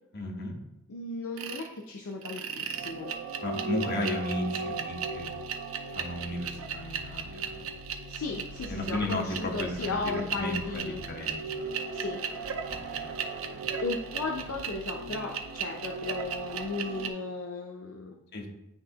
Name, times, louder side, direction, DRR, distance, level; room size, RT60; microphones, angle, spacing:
voice 1, 0.1-0.6 3.4-5.3 5.9-7.7 8.7-11.8 12.7-13.1 13.5-13.7 18.3-18.5, left 1 dB, 50° left, 0 dB, 1.0 m, -35 dB
voice 2, 0.9-3.1 8.1-11.0 11.9-12.2 13.8-18.2, left 3 dB, 75° left, 0 dB, 0.6 m, -35 dB
sound 1, 1.4-1.7 2.2-17.1, right 5 dB, 65° right, 0.6 m, -36 dB
10.0 x 3.4 x 2.9 m, 0.90 s
head